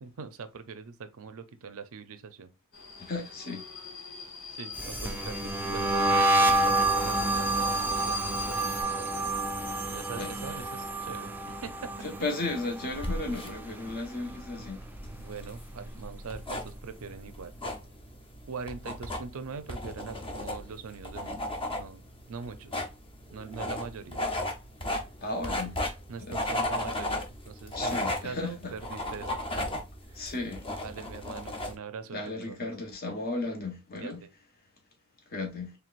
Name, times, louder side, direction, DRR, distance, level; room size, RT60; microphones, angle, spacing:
voice 1, 0.0-2.5 4.5-9.4 9.8-11.9 15.2-17.5 18.5-21.5 21.7-22.0 22.3-22.8 23.3-24.2 26.1-30.2 30.8-32.7 34.0-34.3, right 5 dB, 70° right, 0.5 m, -42 dB
Subway metro underground, 2.7-8.8, left 4 dB, 80° left, 2.1 m, -40 dB
voice 2, 3.0-3.6 10.1-10.3 12.0-14.8 25.2-25.7 26.3-26.4 27.8-28.7 30.2-30.6 32.1-34.2 35.3-35.7, left 2 dB, 45° left, 1.2 m, -34 dB
sound 1, 4.8-13.9 14.2-14.6 15.0-16.5, right 2 dB, 10° right, 0.4 m, -29 dB
sound 2, 12.9-31.7, left 1 dB, 25° left, 0.8 m, -36 dB
4.5 x 3.4 x 2.4 m
head